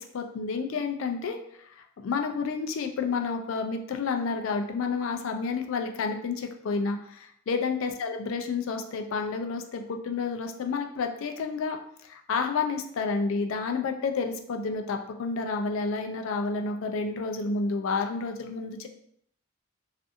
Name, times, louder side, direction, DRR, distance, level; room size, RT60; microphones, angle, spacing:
voice 1, 0.0-18.9, left 4 dB, 80° left, 4 dB, 0.3 m, -30 dB
2.6 x 2.5 x 2.4 m, 0.68 s
head